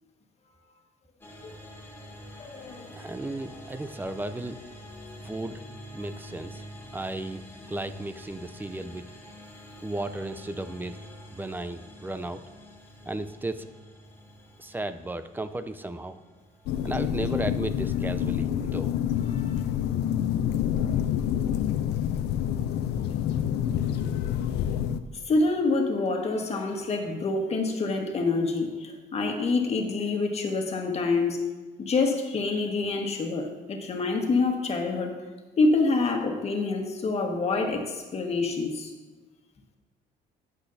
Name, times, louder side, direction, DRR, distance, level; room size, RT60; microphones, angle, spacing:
sound 1, 1.2-20.3, equal, 15° left, 1.4 m, -47 dB
voice 1, 2.4-2.9 19.3-19.6 25.2-31.4 31.8-35.1 35.6-38.9, left 3 dB, 40° left, 2 dB, 1.5 m, -27 dB
voice 2, 2.9-4.6 5.2-5.6 5.9-6.6 6.9-9.1 9.8-11.0 11.3-12.4 13.1-13.7 14.6-16.2 16.8-18.9, right 2 dB, 10° right, 11 dB, 0.4 m, -34 dB
sound 2, 16.7-25.0, left 10 dB, 75° left, 0.5 m, -27 dB
11.5 x 8.3 x 2.7 m, 1.3 s
cardioid pair, 110°, 17 cm